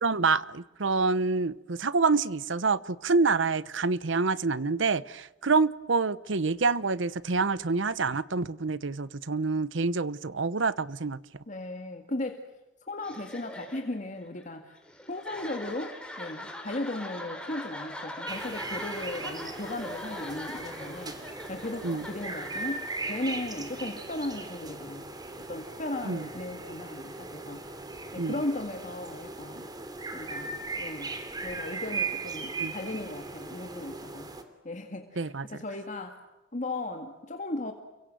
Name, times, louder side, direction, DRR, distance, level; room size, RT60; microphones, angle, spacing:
voice 1, 0.0-11.2 21.8-22.1 26.0-26.3 28.2-28.4 32.6-32.7 35.2-35.4, right 4 dB, 85° right, 0.9 m, -27 dB
voice 2, 11.5-12.5 12.9-14.8 15.1-21.2 21.5-25.1 25.5-27.6 28.1-29.7 30.1-31.1 31.4-34.3 34.6-36.2 36.5-37.7, left 2 dB, 40° left, 2.1 m, -36 dB
sound 1, 13.0-24.7, left 1 dB, 5° left, 4.7 m, -42 dB
sound 2, 18.3-34.4, right 3 dB, 20° right, 3.1 m, -38 dB
29.5 x 23.5 x 7.8 m
head